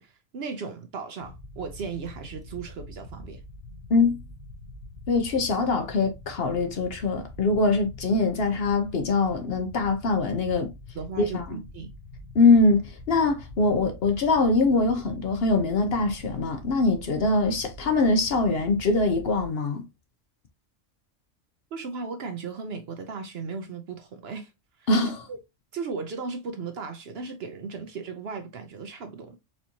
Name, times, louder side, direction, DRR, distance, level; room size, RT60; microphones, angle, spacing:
voice 1, 0.0-3.4 10.9-11.9 21.7-24.5 24.8-24.9 25.3-25.4 25.7-29.4, right 5 dB, 60° right, 0.8 m, -36 dB
sound 1, 1.2-19.5, left 2 dB, 85° left, 1.3 m, -44 dB
voice 2, 5.1-10.7 11.2-11.6 12.3-19.8 24.9-25.2, left 3 dB, 60° left, 0.8 m, -23 dB
4.3 x 2.6 x 2.8 m
omnidirectional pair, 1.3 m